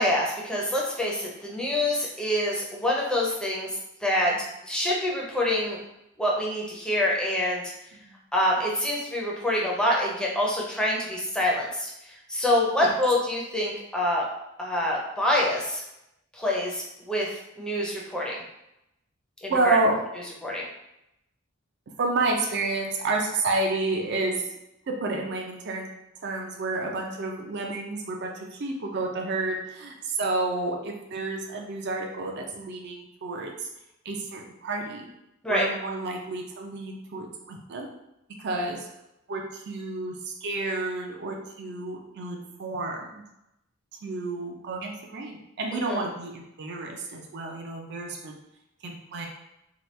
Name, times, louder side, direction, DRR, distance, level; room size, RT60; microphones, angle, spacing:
voice 1, 0.0-3.7 4.0-4.3 4.7-5.8 6.2-7.6 8.3-11.9 12.3-14.3 14.6-15.8 16.3-17.3 17.6-18.4 19.4-19.8 20.4-20.6 35.4-35.7 45.7-46.0, left 1 dB, 5° left, -3 dB, 0.6 m, -26 dB
voice 2, 19.5-20.0 22.0-24.4 24.9-25.9 26.2-33.5 34.1-35.1 35.5-37.9 38.4-38.8 39.3-43.2 44.0-48.3 48.8-49.3, right 2 dB, 55° right, 1 dB, 0.4 m, -30 dB
2.9 x 2.3 x 3.2 m, 0.85 s
head